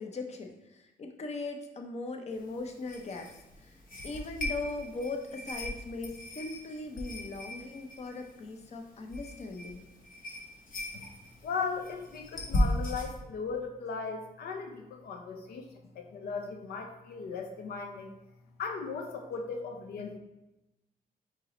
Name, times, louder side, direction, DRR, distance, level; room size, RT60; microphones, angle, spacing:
voice 1, 0.0-3.8 4.0-9.8, left 3 dB, 45° left, 4 dB, 0.6 m, -39 dB
sound 1, 2.3-13.1, left 1 dB, 65° left, 1.0 m, -37 dB
voice 2, 11.4-15.7 15.9-18.1 18.6-20.2, left 5 dB, 85° left, 4 dB, 0.5 m, -37 dB
4.6 x 3.0 x 3.8 m, 0.93 s
cardioid pair, 85°, 16 cm